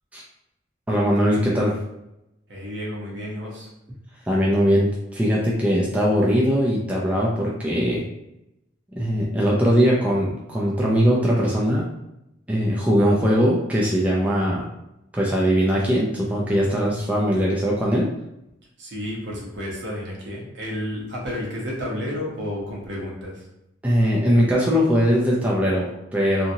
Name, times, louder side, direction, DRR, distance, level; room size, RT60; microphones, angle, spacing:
voice 1, 0.9-1.8 4.3-8.0 9.0-11.8 12.5-14.6 15.1-18.1 23.8-26.5, equal, 5° right, -5 dB, 0.3 m, -20 dB
voice 2, 2.5-3.7 18.8-23.4, left 1 dB, 60° right, -3 dB, 0.9 m, -31 dB
2.8 x 2.6 x 2.7 m, 0.87 s
head